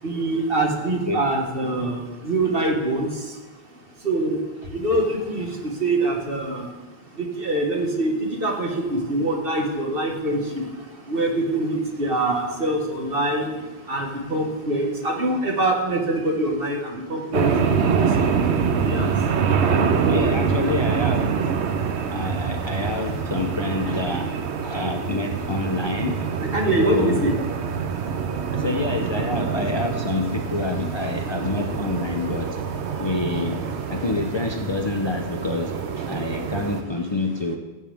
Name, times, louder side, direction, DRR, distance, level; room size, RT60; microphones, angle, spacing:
voice 1, 0.0-3.4 4.0-4.4 4.7-6.7 7.1-18.4 18.7-19.9 21.8-22.2 23.0-23.1 26.5-27.3 27.9-28.6, right 2 dB, 55° right, 0 dB, 1.8 m, -25 dB
sound 1, 17.3-36.8, right 6 dB, 80° right, 1.0 m, -25 dB
voice 2, 20.1-21.2 22.1-24.3 24.6-26.3 26.7-27.3 28.5-32.6 32.9-33.6 33.9-37.6, left 3 dB, 30° left, 2 dB, 0.6 m, -27 dB
14.5 x 7.2 x 3.5 m, 1.2 s
omnidirectional pair, 1.1 m